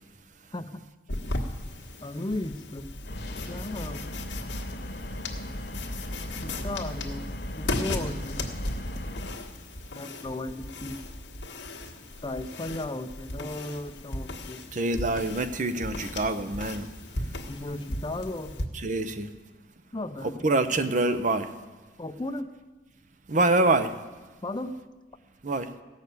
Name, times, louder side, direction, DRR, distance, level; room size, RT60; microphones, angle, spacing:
voice 1, 0.5-0.8 2.0-2.9 3.3-4.1 6.4-7.2 7.6-8.4 9.9-11.0 12.2-14.6 17.5-18.5 19.9-20.5 22.0-22.5 24.4-24.8, left 1 dB, 25° left, 10 dB, 0.6 m, -35 dB
sound 1, 1.1-18.7, left 2 dB, 85° left, 1.5 m, -37 dB
sound 2, 3.0-9.3, equal, 65° left, 1.4 m, -37 dB
voice 2, 14.7-16.8 18.8-19.3 20.4-21.5 23.3-23.9 25.4-25.7, right 2 dB, 45° right, 10 dB, 0.7 m, -25 dB
16.5 x 6.6 x 8.3 m, 1.3 s
head